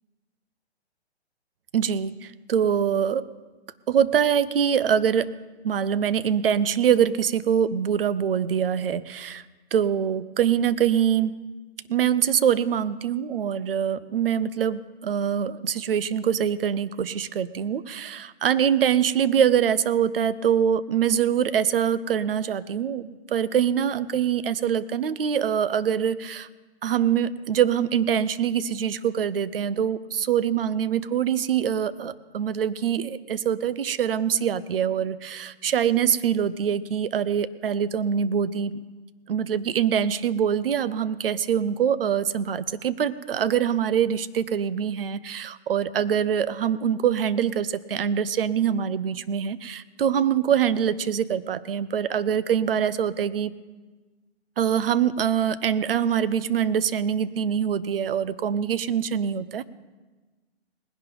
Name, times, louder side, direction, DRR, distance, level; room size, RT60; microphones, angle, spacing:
voice 1, 1.7-3.3 3.9-5.3 5.6-9.4 9.7-11.4 11.9-26.5 26.8-38.8 39.3-53.5 54.6-59.6, right 8 dB, 60° right, 16 dB, 0.7 m, -24 dB
19.5 x 11.0 x 4.0 m, 1.2 s
hypercardioid pair, 145°, 33 cm